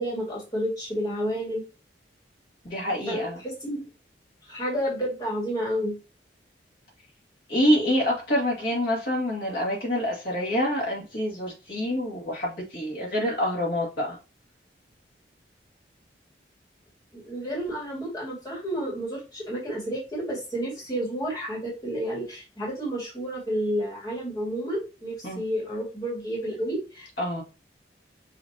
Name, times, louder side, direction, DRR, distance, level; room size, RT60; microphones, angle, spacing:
voice 1, 0.0-1.6 3.1-3.8 4.5-6.0 17.1-27.1, equal, 20° left, -5 dB, 2.1 m, -30 dB
voice 2, 2.6-3.4 7.5-14.2 25.2-25.4 27.2-27.4, equal, 60° left, -5 dB, 2.0 m, -26 dB
5.9 x 3.2 x 2.8 m, 0.30 s
head